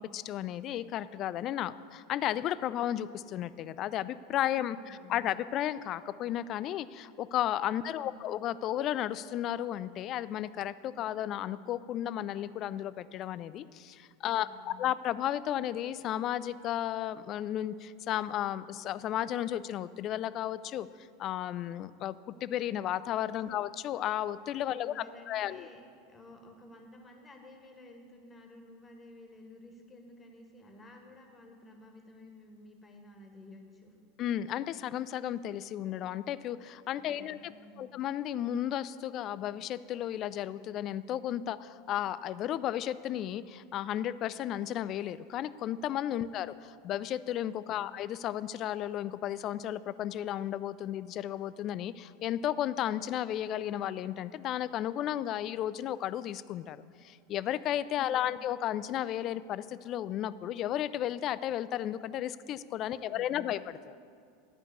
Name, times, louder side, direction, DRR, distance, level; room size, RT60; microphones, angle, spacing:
voice 1, 0.0-20.9 21.2-22.2 22.4-25.7 34.2-37.5 37.8-46.5 46.8-56.8 57.0-64.0, left 11 dB, 40° left, 16 dB, 0.3 m, -33 dB
voice 2, 4.5-5.2 7.8-8.2 14.3-14.9 23.4-23.6 24.7-25.8 26.1-33.9 37.0-37.9 46.2-46.3 47.7-47.9 57.9-58.4 62.9-63.5, left 2 dB, 20° left, 3 dB, 1.7 m, -53 dB
11.0 x 5.2 x 8.3 m, 2.3 s
figure-of-eight pair, 85°, 0 cm